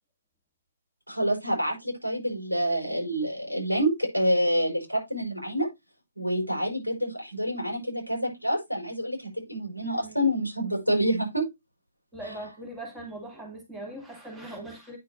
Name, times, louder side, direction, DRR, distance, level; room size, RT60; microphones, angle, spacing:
voice 1, 1.1-5.7 6.2-11.5 12.3-12.4, equal, 90° right, 5.4 m, -27 dB
voice 2, 9.8-10.2 12.1-15.0, right 1 dB, 10° right, 2.7 m, -40 dB
9.4 x 6.1 x 2.6 m
figure-of-eight pair, 125°, 0 cm